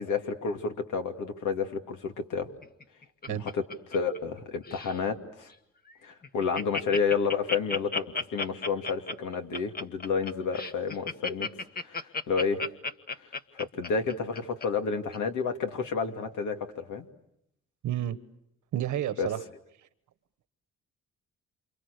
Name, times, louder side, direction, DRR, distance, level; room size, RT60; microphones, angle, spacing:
voice 1, 0.0-2.5 3.3-3.6 3.9-5.5 6.0-11.5 11.8-12.6 13.6-17.1 19.2-19.3, left 5 dB, 80° left, 5 dB, 2.7 m, -30 dB
Laughter, 2.6-4.4 4.6-5.0 5.5-5.6 5.9-6.0 6.2-14.6 15.1-15.2, left 4 dB, 30° left, 1.6 m, -34 dB
voice 2, 17.8-18.2 18.7-19.4, right 11 dB, 75° right, 13 dB, 1.5 m, -30 dB
28.5 x 28.0 x 6.7 m, 0.78 s
cardioid pair, 90°, 30 cm